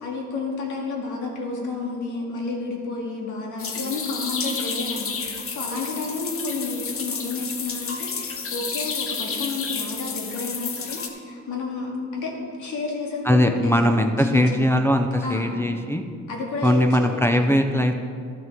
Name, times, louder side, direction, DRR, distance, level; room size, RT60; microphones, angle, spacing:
voice 1, 0.0-12.3 12.6-14.0 14.3-14.8 15.2-15.6 16.3-17.7, left 3 dB, 75° left, -1 dB, 2.1 m, -31 dB
sound 1, 3.6-11.1, left 5 dB, 45° left, 1.0 m, -31 dB
voice 2, 13.2-16.0 16.6-17.9, left 1 dB, 10° left, 3 dB, 0.6 m, -20 dB
12.5 x 6.2 x 4.5 m, 2.2 s
cardioid pair, 90°, 30 cm